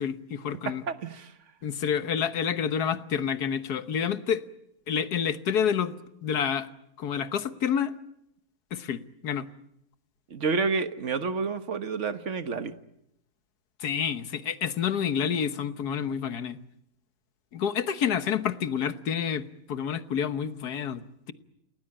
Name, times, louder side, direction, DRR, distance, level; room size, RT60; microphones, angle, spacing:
voice 1, 0.0-0.8 1.6-4.4 4.9-5.9 6.2-6.7 7.0-7.9 8.7-9.5 13.8-16.6 17.5-21.3, left 8 dB, 85° left, 11 dB, 1.7 m, -28 dB
voice 2, 0.7-1.3 10.3-12.7, right 4 dB, 50° right, 10 dB, 1.6 m, -29 dB
29.0 x 18.5 x 8.9 m, 0.80 s
omnidirectional pair, 1.6 m